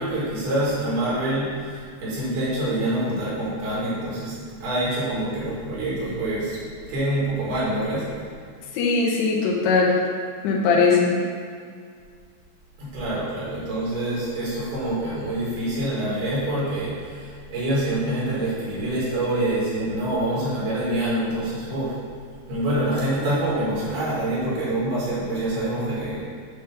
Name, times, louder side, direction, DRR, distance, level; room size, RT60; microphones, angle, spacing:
voice 1, 0.0-6.6 6.9-8.3 12.8-22.0 22.5-26.2, right 1 dB, 75° right, -8 dB, 4.1 m, -26 dB
voice 2, 8.7-10.0 10.4-11.2, left 4 dB, 85° left, -2 dB, 3.0 m, -20 dB
9.3 x 3.5 x 5.6 m, 2.1 s
omnidirectional pair, 4.6 m